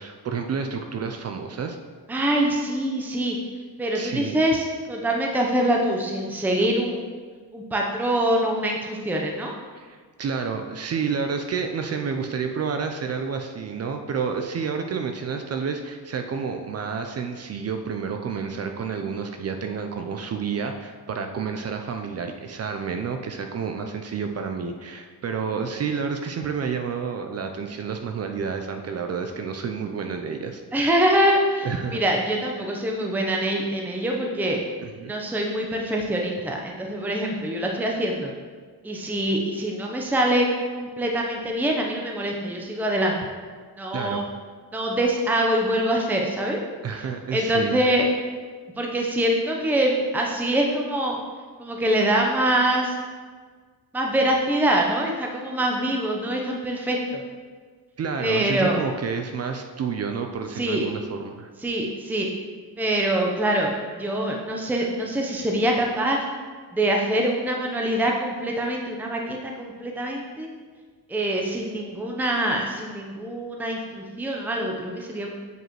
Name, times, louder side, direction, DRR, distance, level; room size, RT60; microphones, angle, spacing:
voice 1, 0.0-1.8 3.9-4.4 9.7-30.6 31.6-32.0 34.8-35.1 43.9-44.2 46.8-47.9 58.0-61.5, right 6 dB, 40° right, 5 dB, 0.5 m, -30 dB
voice 2, 2.1-3.4 3.8-7.0 7.5-9.5 30.7-34.6 35.1-38.3 38.8-40.5 40.7-43.2 43.8-44.2 44.7-46.6 47.3-48.1 48.8-51.2 51.6-52.9 53.9-57.2 58.2-58.8 60.5-60.9 61.6-62.3 62.8-66.2 66.7-70.5 71.1-75.3, right 1 dB, 5° right, 0 dB, 0.7 m, -24 dB
7.9 x 4.8 x 3.0 m, 1.5 s
cardioid pair, 100°, 38 cm